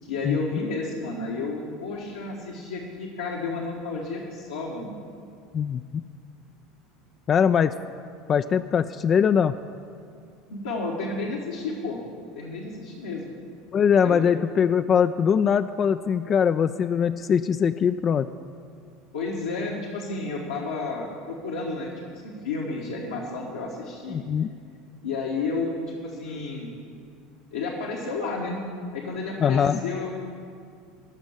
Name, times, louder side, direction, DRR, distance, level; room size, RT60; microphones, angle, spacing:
voice 1, 0.0-4.9 10.5-12.0 12.3-13.4 14.0-14.3 19.1-24.2 25.0-26.7 27.5-28.6 28.9-30.1, left 3 dB, 75° left, -5 dB, 1.4 m, -31 dB
voice 2, 5.5-6.0 7.3-7.7 8.3-9.5 13.7-18.3 24.1-24.5 29.4-29.8, left 7 dB, 35° left, 10 dB, 0.3 m, -22 dB
14.0 x 6.1 x 9.9 m, 2.3 s
figure-of-eight pair, 70°, 0 cm